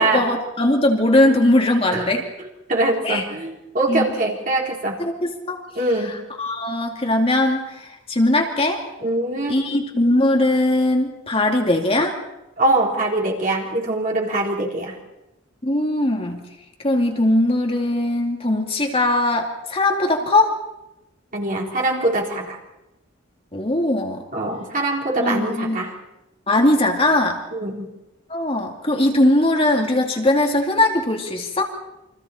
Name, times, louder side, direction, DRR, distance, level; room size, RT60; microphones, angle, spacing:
voice 1, 0.0-2.2 3.0-3.2 3.9-4.1 5.0-5.6 6.4-8.8 9.5-12.2 15.6-16.4 16.8-20.5 23.5-24.2 25.2-25.8 26.5-27.4 28.3-31.7, left 1 dB, 30° left, 2 dB, 2.5 m, -20 dB
voice 2, 2.7-5.0 5.7-6.2 9.0-9.6 12.6-15.0 21.3-22.6 24.3-25.9 27.5-27.9, right 2 dB, 45° right, -2 dB, 4.0 m, -23 dB
29.0 x 24.5 x 4.4 m, 0.93 s
head